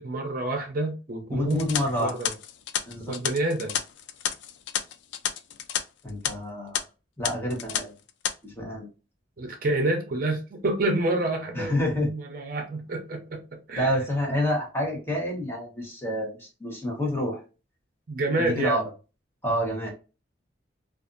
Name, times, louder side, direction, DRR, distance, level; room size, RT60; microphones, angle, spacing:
voice 1, 0.0-1.6 2.0-2.3 3.1-3.8 9.4-13.4 13.7-14.0 18.1-18.8, right 2 dB, 50° right, 0.6 m, -28 dB
voice 2, 1.3-2.2 2.9-3.2 6.0-6.8 7.2-7.9 8.4-8.9 11.5-12.1 13.7-17.4 18.4-18.8 19.4-19.9, equal, 10° left, 1.0 m, -28 dB
Metal Cracking Hi-Hat Rhythm, 1.5-5.8 6.1-6.3 6.7-6.8 7.2-7.8 8.1-8.3, left 9 dB, 70° left, 0.3 m, -30 dB
2.6 x 2.4 x 2.4 m
head